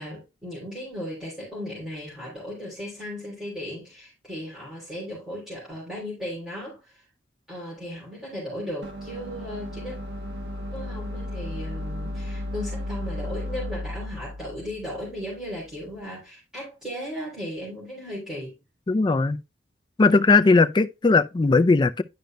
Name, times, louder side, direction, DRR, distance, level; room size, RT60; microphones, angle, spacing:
voice 1, 0.0-7.0 7.5-10.0 10.7-18.5, equal, 5° right, 3.4 m, -36 dB
sound 1, 8.8-15.9, left 1 dB, 70° right, 0.9 m, -34 dB
voice 2, 18.9-19.4 20.0-22.0, left 3 dB, 25° left, 0.4 m, -18 dB
10.5 x 5.2 x 2.2 m
head